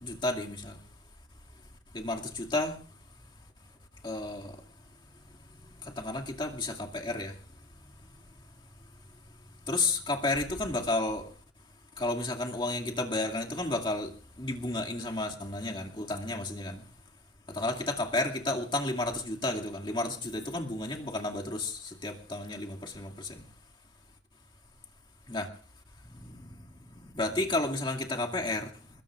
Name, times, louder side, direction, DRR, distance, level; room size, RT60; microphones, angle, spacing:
voice 1, 0.0-0.8 1.9-2.8 4.0-4.6 5.8-7.4 9.7-11.3 12.0-16.8 17.5-23.4 25.3-25.5 26.1-26.5 26.9-28.7, left 2 dB, 30° left, 2.4 m, -32 dB
23.0 x 22.0 x 2.5 m
head